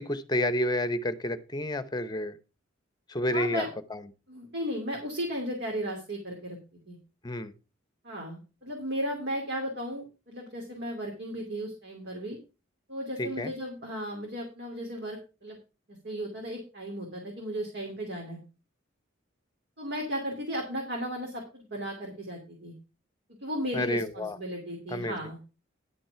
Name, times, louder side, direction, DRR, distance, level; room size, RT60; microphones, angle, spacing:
voice 1, 0.0-2.4 3.1-3.6 3.9-4.0 7.2-7.5 13.2-13.5 23.7-24.4 24.9-25.2, left 1 dB, 20° left, 14 dB, 0.9 m, -30 dB
voice 2, 3.2-3.7 4.3-6.6 6.9-7.0 8.0-12.4 12.9-15.6 15.9-18.4 19.8-22.7 23.4-25.4, equal, 60° right, 0 dB, 2.9 m, -35 dB
11.0 x 6.1 x 5.7 m, 0.30 s
head